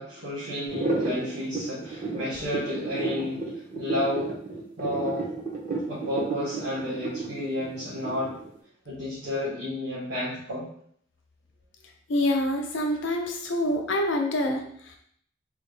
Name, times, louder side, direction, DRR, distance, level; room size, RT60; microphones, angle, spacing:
voice 1, 0.0-3.4 3.8-4.4 4.8-5.3 5.9-8.4 8.8-10.6, left 1 dB, 70° right, -10 dB, 1.2 m, -31 dB
sound 1, 0.7-8.5, right 3 dB, 45° right, 0.8 m, -31 dB
voice 2, 12.1-15.0, left 1 dB, 80° left, 3 dB, 0.6 m, -26 dB
3.4 x 2.4 x 3.3 m, 0.63 s
head